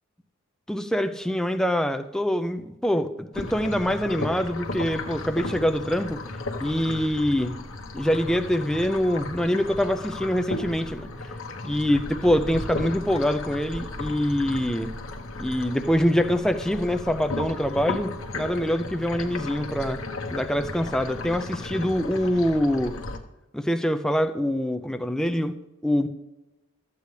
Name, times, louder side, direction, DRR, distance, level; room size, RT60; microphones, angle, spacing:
voice 1, 0.7-6.2 6.6-7.6 7.9-11.1 11.6-14.9 15.4-20.0 20.3-22.9 23.5-25.6 25.8-26.1, equal, 5° left, 7 dB, 0.4 m, -24 dB
sound 1, 3.3-23.2, left 2 dB, 65° left, 1.0 m, -35 dB
13.0 x 8.3 x 3.2 m, 1.0 s
head